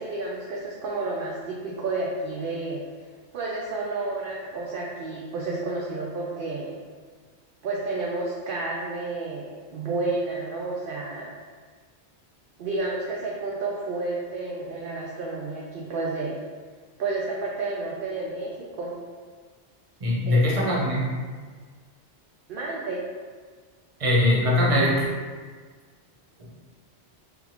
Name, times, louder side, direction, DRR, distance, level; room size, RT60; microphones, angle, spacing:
voice 1, 0.0-2.8 3.3-6.7 7.6-11.3 12.6-16.4 17.0-18.9 20.3-20.6 22.5-23.0, right 3 dB, 60° right, -3 dB, 0.7 m, -31 dB
voice 2, 20.0-21.1 24.0-25.1 26.4-26.5, left 1 dB, 35° right, -5 dB, 0.9 m, -21 dB
3.6 x 3.4 x 2.9 m, 1.5 s
omnidirectional pair, 1.2 m